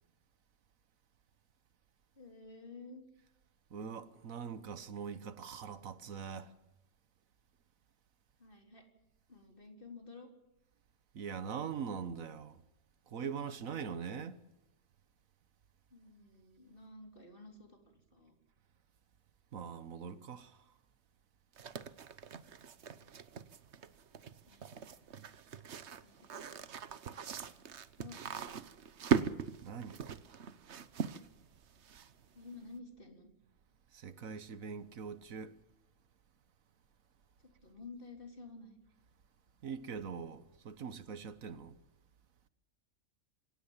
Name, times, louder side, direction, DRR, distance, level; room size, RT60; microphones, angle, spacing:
voice 1, 2.2-3.0 8.4-8.8 9.3-10.3 15.9-18.4 24.5-24.6 26.0-26.4 28.0-28.2 32.3-33.3 37.4-38.8, left 3 dB, 40° left, 4.0 m, -52 dB
voice 2, 3.7-6.5 11.1-12.6 13.1-14.4 19.5-20.6 29.6-30.0 33.9-35.5 39.6-41.8, right 6 dB, 90° right, 1.6 m, -42 dB
sound 1, 21.6-32.4, right 7 dB, 60° right, 1.2 m, -39 dB
26.5 x 17.0 x 7.3 m
omnidirectional pair, 1.4 m